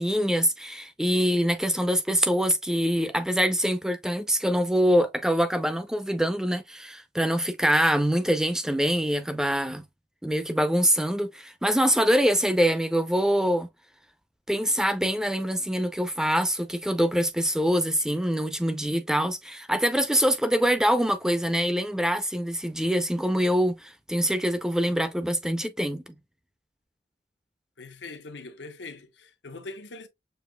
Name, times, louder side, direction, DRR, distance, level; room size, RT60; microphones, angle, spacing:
voice 1, 0.0-9.8 10.2-13.7 14.5-26.0, equal, 5° right, 0.5 m, -24 dB
voice 2, 27.8-30.1, left 3 dB, 85° left, 0.9 m, -42 dB
6.8 x 2.9 x 2.2 m
head